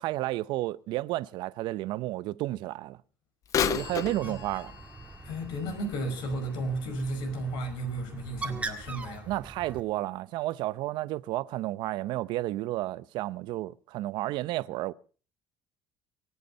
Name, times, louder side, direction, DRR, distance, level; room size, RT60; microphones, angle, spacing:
voice 1, 0.0-3.0 3.7-4.7 9.3-14.9, right 16 dB, 65° right, 0.7 m, -32 dB
Bird vocalization bird call bird song / Telephone, 3.4-7.3 7.8-7.9 8.7-8.8 9.5-9.6, left 8 dB, 40° left, 1.1 m, -34 dB
Bird, 3.7-9.8, right 3 dB, 15° right, 1.8 m, -42 dB
voice 2, 5.2-9.3, right 1 dB, 70° left, 5.1 m, -33 dB
24.5 x 8.4 x 5.3 m
cardioid pair, 125°, 8 cm